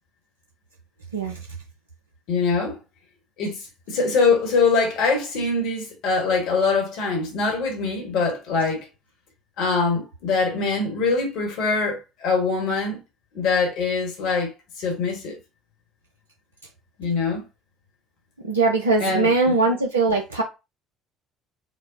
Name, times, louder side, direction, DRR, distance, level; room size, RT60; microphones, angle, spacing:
voice 1, 2.3-2.8 3.4-8.9 9.6-13.0 13.3-15.4 17.0-17.5 19.0-19.5, left 4 dB, 65° left, 1.3 m, -23 dB
voice 2, 18.4-20.4, right 3 dB, 90° right, 0.5 m, -21 dB
5.2 x 2.1 x 2.6 m
figure-of-eight pair, 55°, 0 cm